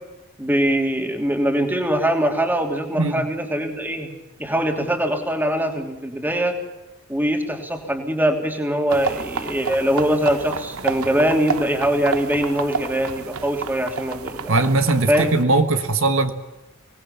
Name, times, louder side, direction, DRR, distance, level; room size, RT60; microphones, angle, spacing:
voice 1, 0.4-4.1 4.4-6.5 7.1-14.5 15.1-15.3, equal, 10° right, 3 dB, 3.0 m, -22 dB
voice 2, 3.0-3.3 14.5-16.3, right 2 dB, 70° right, 8 dB, 1.5 m, -19 dB
sound 1, 8.9-15.4, right 5 dB, 90° right, 0.9 m, -30 dB
24.5 x 19.5 x 7.2 m, 1.0 s
head